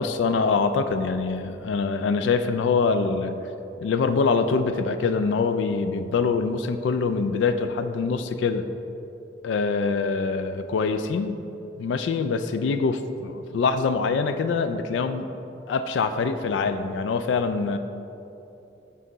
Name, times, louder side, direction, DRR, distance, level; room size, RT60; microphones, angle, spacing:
voice 1, 0.0-3.4 3.8-8.7 9.4-11.4 11.8-15.3 15.7-17.8, left 4 dB, 80° left, 9 dB, 0.3 m, -24 dB
6.5 x 3.7 x 4.0 m, 2.9 s
head